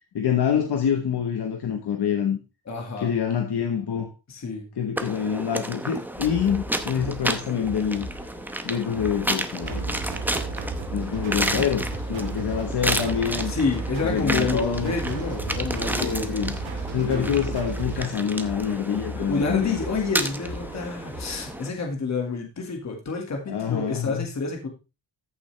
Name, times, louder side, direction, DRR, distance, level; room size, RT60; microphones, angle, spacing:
voice 1, 0.1-2.4 3.0-4.1 4.8-8.1 8.6-10.0 10.9-11.8 12.1-13.5 14.0-15.0 16.0-16.6 16.9-19.8 23.5-24.3, left 8 dB, 60° left, 5 dB, 1.3 m, -26 dB
voice 2, 2.7-3.1 4.3-4.7 13.5-16.6 17.1-17.3 19.3-24.7, left 4 dB, 35° left, 2 dB, 2.0 m, -29 dB
sound 1, 5.0-21.7, right 1 dB, 5° right, 0.8 m, -32 dB
sound 2, 6.1-21.6, equal, 85° left, 4.2 m, -39 dB
sound 3, 9.6-18.1, right 4 dB, 80° right, 3.4 m, -33 dB
14.0 x 7.0 x 3.3 m, 0.29 s
wide cardioid pair, 175°, 45 cm